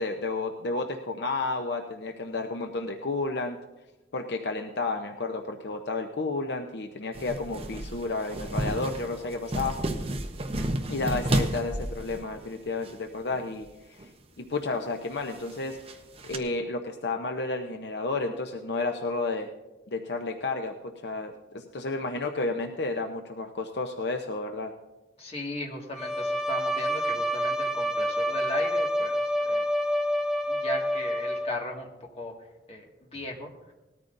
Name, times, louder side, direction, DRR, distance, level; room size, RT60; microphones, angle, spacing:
voice 1, 0.0-3.6 4.1-9.7 10.9-14.1 14.4-15.8 16.2-19.5 19.9-20.7 21.0-24.7, left 3 dB, 65° left, 4 dB, 0.7 m, -31 dB
sound 1, 7.1-12.9 13.3-13.7 14.0-14.1 14.8-16.4, right 1 dB, 35° right, 0.8 m, -32 dB
voice 2, 25.2-29.7 30.5-32.3 32.7-32.8 33.1-33.7, left 1 dB, 35° left, 0 dB, 1.9 m, -37 dB
Bowed string instrument, 25.9-31.7, equal, 5° right, 0.6 m, -28 dB
19.5 x 13.5 x 2.6 m, 1.0 s
head